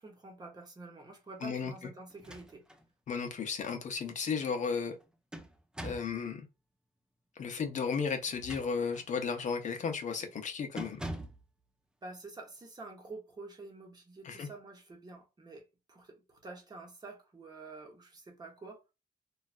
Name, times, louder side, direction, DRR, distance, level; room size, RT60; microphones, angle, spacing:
voice 1, 0.0-2.7 12.0-18.8, right 3 dB, 25° right, 0.9 m, -48 dB
voice 2, 1.4-1.7 3.1-5.0 5.8-6.5 7.4-11.0 14.2-14.5, left 5 dB, 55° left, 0.6 m, -34 dB
sound 1, 2.1-2.9 3.3-3.4 4.8-6.2 8.2-9.1 9.6-9.9 10.2-10.4 10.8-11.5, right 1 dB, 5° right, 0.5 m, -44 dB
3.1 x 2.3 x 2.3 m
cardioid pair, 125°, 15 cm